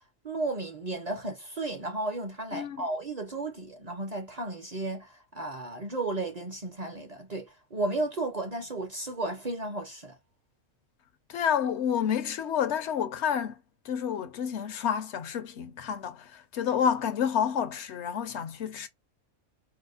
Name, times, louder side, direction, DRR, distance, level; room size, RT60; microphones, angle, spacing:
voice 1, 0.2-10.2, right 2 dB, 40° right, 0.6 m, -34 dB
voice 2, 2.5-2.8 11.3-13.6 13.8-18.9, left 8 dB, 70° left, 0.8 m, -29 dB
4.8 x 2.0 x 2.4 m
omnidirectional pair, 1.3 m